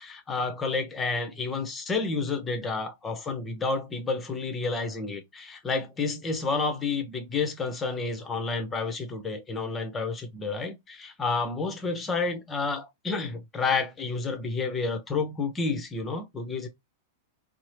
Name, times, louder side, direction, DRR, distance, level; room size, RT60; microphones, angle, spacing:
voice 1, 0.0-16.7, left 4 dB, 20° left, 0.8 m, -30 dB
2.9 x 2.0 x 3.1 m
hypercardioid pair, 100°, 0 cm